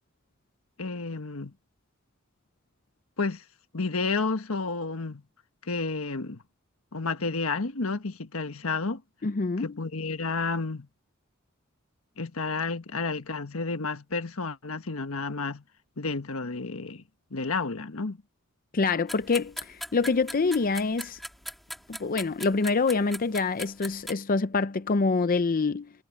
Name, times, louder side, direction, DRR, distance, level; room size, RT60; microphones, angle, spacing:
voice 1, 0.8-1.5 3.2-3.4 3.7-5.2 5.6-6.4 6.9-9.0 9.6-10.9 12.2-15.6 16.0-17.0 17.3-18.2, left 3 dB, 90° left, 1.4 m, -31 dB
voice 2, 9.2-9.8 18.7-21.2 21.9-25.9, left 4 dB, 45° left, 0.6 m, -26 dB
sound 1, 19.1-24.1, equal, ahead, 2.9 m, -40 dB
head